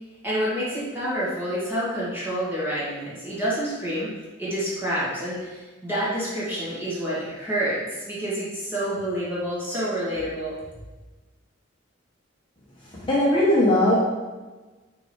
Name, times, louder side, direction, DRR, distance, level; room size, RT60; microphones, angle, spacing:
voice 1, 0.2-4.1 4.4-10.5, equal, 10° right, -9 dB, 2.2 m, -28 dB
voice 2, 13.0-14.0, left 1 dB, 25° left, -7 dB, 1.1 m, -19 dB
5.9 x 4.6 x 4.6 m, 1.2 s
head